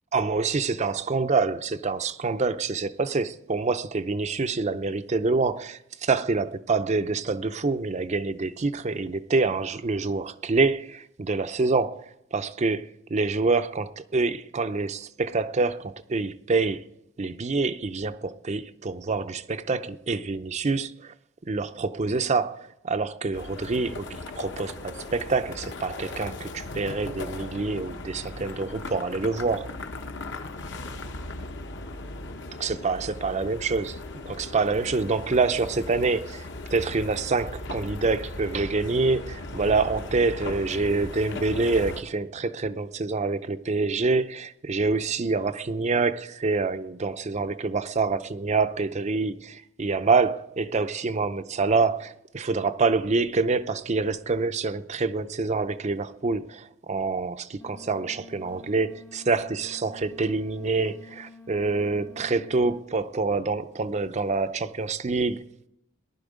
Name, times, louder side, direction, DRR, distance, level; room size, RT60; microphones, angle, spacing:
voice 1, 0.1-16.8 17.2-21.1 21.5-29.7 32.6-33.9 34.3-36.4 36.7-65.5, right 3 dB, 35° right, 0.5 m, -26 dB
sound 1, 23.3-42.0, left 2 dB, 60° left, 1.1 m, -38 dB
sound 2, 57.6-62.8, left 3 dB, 10° left, 0.6 m, -49 dB
18.5 x 11.0 x 5.1 m
head